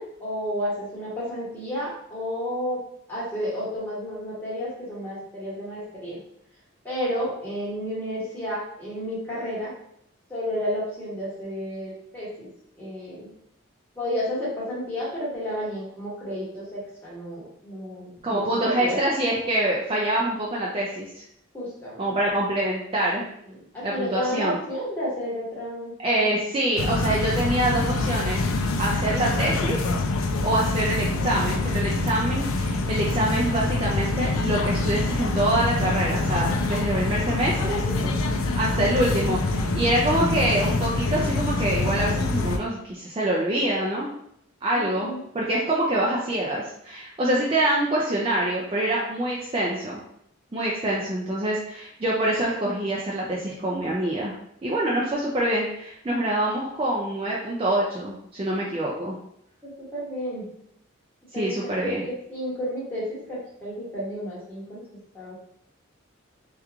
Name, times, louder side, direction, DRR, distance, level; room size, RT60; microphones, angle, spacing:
voice 1, 0.0-6.2 6.8-9.7 10.3-12.5 12.7-13.3 14.0-19.0 21.5-22.1 23.4-26.0 37.5-38.2 44.7-45.2 58.6-58.9 59.6-60.4 61.3-64.9 65.1-65.5, equal, 10° left, -9 dB, 1.2 m, -32 dB
voice 2, 18.2-21.2 22.0-23.2 23.8-24.6 26.0-28.4 28.8-29.8 30.4-37.8 38.6-44.1 44.6-50.0 50.5-54.3 54.6-59.2 61.3-62.0, right 1 dB, 25° right, -4 dB, 0.4 m, -25 dB
sound 1, 26.8-42.6, left 2 dB, 85° left, 0.4 m, -25 dB
3.0 x 2.4 x 3.4 m, 0.73 s
head